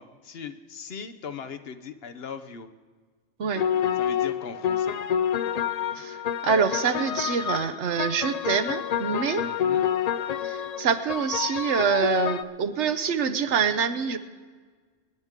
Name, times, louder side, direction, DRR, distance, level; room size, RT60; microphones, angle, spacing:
voice 1, 0.0-2.7 4.0-5.0 9.4-9.8, left 6 dB, 60° left, 10 dB, 0.9 m, -39 dB
sound 1, 3.5-12.4, left 9 dB, 90° left, 0.3 m, -28 dB
voice 2, 6.0-9.4 10.4-14.2, right 6 dB, 70° right, 10 dB, 1.1 m, -26 dB
25.0 x 10.5 x 3.6 m, 1.5 s
omnidirectional pair, 1.3 m